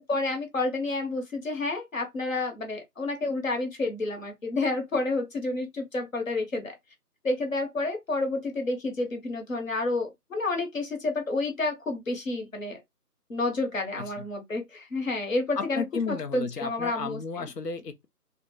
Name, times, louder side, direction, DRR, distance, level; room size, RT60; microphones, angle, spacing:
voice 1, 0.1-6.8 7.2-12.8 13.3-17.5, left 2 dB, 55° left, 1.0 m, -30 dB
voice 2, 15.5-18.1, left 5 dB, 85° left, 0.7 m, -33 dB
2.4 x 2.1 x 3.1 m
figure-of-eight pair, 155°, 47 cm